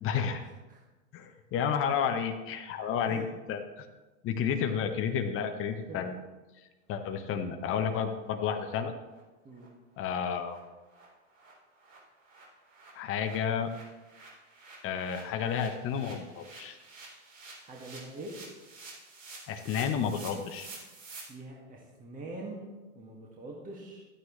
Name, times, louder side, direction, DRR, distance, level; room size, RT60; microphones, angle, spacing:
voice 1, 0.0-0.5 1.1-3.2 3.5-3.9 4.2-6.2 6.9-8.9 10.0-10.6 12.9-13.7 14.8-16.8 19.5-20.7, left 7 dB, 35° left, 6 dB, 1.1 m, -31 dB
sound 1, 8.2-8.3 8.7-8.8 9.1-9.2 9.6-9.7 10.0-10.1 10.4-10.6 10.9-11.1 11.3-21.2, right 3 dB, 80° right, 4.2 m, -50 dB
voice 2, 17.6-18.3 21.3-24.0, right 2 dB, 20° right, -3 dB, 2.1 m, -44 dB
14.0 x 9.4 x 3.3 m, 1.2 s
hypercardioid pair, 105°, 38 cm